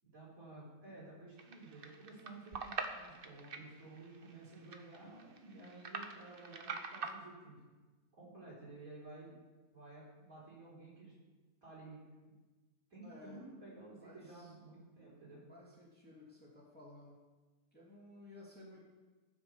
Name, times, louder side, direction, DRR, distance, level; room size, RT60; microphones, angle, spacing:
voice 1, 0.1-7.6 8.1-9.3 9.7-11.1 11.6-12.0 12.3-12.4 12.9-15.4, right 2 dB, 65° right, -7 dB, 5.4 m, -53 dB
sound 1, 1.4-7.1, right 4 dB, 45° right, 1.0 m, -45 dB
voice 2, 13.0-13.4 14.0-14.5 15.5-17.1 17.7-18.8, left 2 dB, 5° left, -5 dB, 2.8 m, -56 dB
15.5 x 6.3 x 7.1 m, 1.3 s
omnidirectional pair, 1.6 m